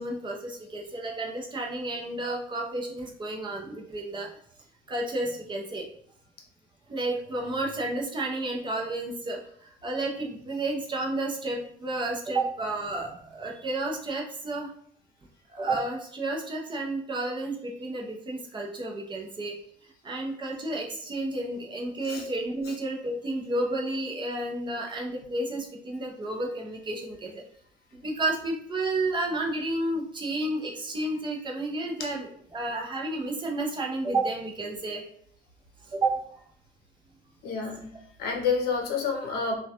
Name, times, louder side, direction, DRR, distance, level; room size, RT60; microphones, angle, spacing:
voice 1, 0.0-4.3 4.9-5.9 6.9-14.7 15.5-19.5 20.0-27.4 27.9-35.0 35.9-36.2 37.5-37.6, right 2 dB, 30° right, 0 dB, 0.5 m, -31 dB
voice 2, 37.4-37.9 38.2-39.6, left 5 dB, 70° left, 2 dB, 0.6 m, -28 dB
2.2 x 2.2 x 2.7 m, 0.63 s
cardioid pair, 110°, 17 cm